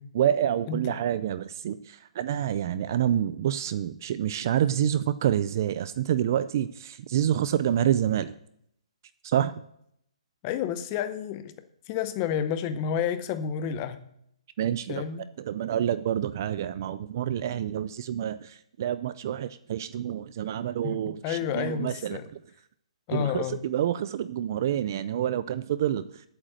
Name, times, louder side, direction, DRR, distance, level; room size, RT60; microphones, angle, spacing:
voice 1, 0.1-8.3 9.2-9.5 14.6-15.0 15.4-22.2 23.1-26.1, right 10 dB, 30° right, 14 dB, 0.3 m, -27 dB
voice 2, 0.7-1.0 10.4-11.5 11.9-14.1 14.9-15.3 21.0-22.3 23.1-23.7, left 8 dB, 20° left, 11 dB, 0.6 m, -30 dB
8.3 x 7.8 x 7.7 m, 0.73 s
hypercardioid pair, 175°, 4 cm